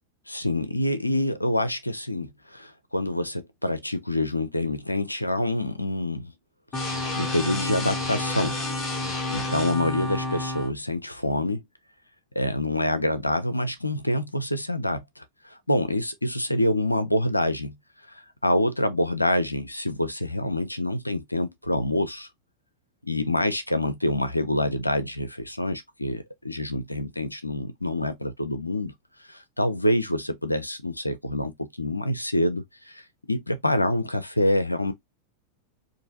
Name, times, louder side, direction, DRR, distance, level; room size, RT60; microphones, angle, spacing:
voice 1, 0.3-6.3 6.7-8.6 9.3-11.6 12.4-17.8 18.1-22.3 23.0-28.9 29.3-31.5 31.8-34.9, left 1 dB, 85° left, 0.5 m, -26 dB
sound 1, 6.7-10.7, left 1 dB, 30° left, 1.1 m, -29 dB
4.0 x 2.6 x 2.7 m
figure-of-eight pair, 90°, 0 cm